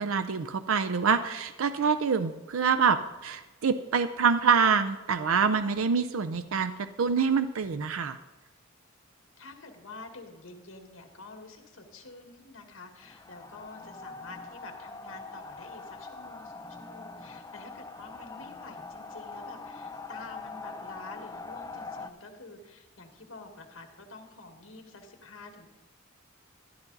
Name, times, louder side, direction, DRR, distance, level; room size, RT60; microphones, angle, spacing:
voice 1, 0.0-8.2, right 6 dB, 85° right, 11 dB, 0.5 m, -26 dB
voice 2, 9.4-25.7, left 3 dB, 85° left, 4 dB, 1.8 m, -48 dB
sound 1, 13.0-22.1, left 3 dB, 15° left, 0.6 m, -43 dB
12.0 x 12.0 x 4.0 m, 1.2 s
head